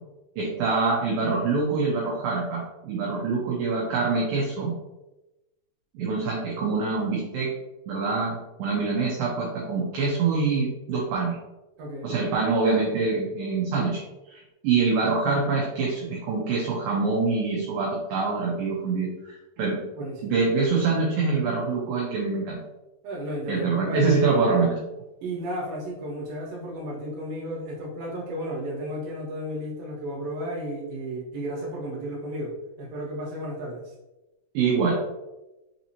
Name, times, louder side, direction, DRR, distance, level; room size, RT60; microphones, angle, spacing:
voice 1, 0.4-4.7 6.0-7.5 7.9-11.4 12.0-14.0 14.3-22.6 23.5-24.8 34.5-35.0, right 4 dB, 85° right, -2 dB, 2.0 m, -25 dB
voice 2, 11.8-12.1 20.0-20.3 23.0-24.1 25.2-33.8, equal, 65° right, -3 dB, 2.5 m, -33 dB
6.1 x 2.8 x 2.7 m, 0.99 s
omnidirectional pair, 4.9 m